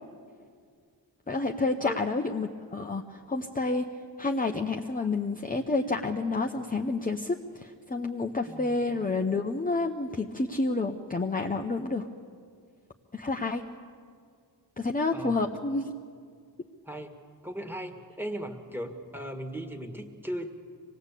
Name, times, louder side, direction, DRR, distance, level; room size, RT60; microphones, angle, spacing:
voice 1, 1.3-3.9 4.2-12.1 13.1-13.6 14.8-15.9, left 3 dB, 20° left, 2 dB, 0.8 m, -29 dB
voice 2, 8.5-9.2 15.1-15.5 16.9-17.2 17.4-20.5, equal, 5° right, 5 dB, 1.9 m, -38 dB
25.5 x 19.5 x 8.4 m, 2.1 s
wide cardioid pair, 125°, 40 cm